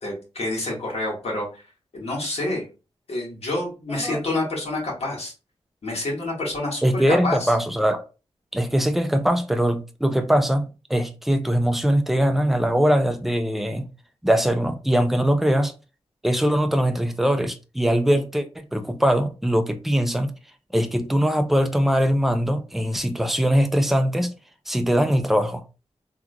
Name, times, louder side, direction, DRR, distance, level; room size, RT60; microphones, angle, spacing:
voice 1, 0.0-1.6 1.9-2.6 3.1-5.3 5.8-7.5, left 2 dB, 70° left, 1.8 m, -28 dB
voice 2, 6.8-8.0 8.5-10.6 10.9-13.9 14.2-15.7 16.2-20.3 20.7-24.3 24.7-25.6, equal, ahead, 0.5 m, -21 dB
3.7 x 2.9 x 2.3 m
wide cardioid pair, 90°, 11 cm